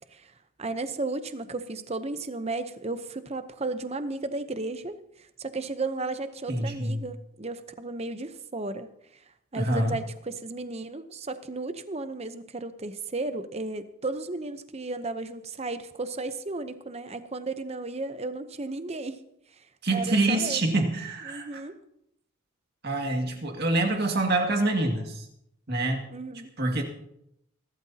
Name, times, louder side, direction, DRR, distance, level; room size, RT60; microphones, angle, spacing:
voice 1, 0.6-8.9 9.5-19.2 19.9-20.7 21.3-21.8 26.1-26.5, right 3 dB, 30° right, 10 dB, 0.8 m, -34 dB
voice 2, 6.5-7.0 9.6-10.0 19.8-21.6 22.8-25.3 25.7-26.1 26.6-26.8, right 2 dB, 45° right, 2 dB, 2.1 m, -26 dB
26.0 x 12.5 x 2.9 m, 0.78 s
head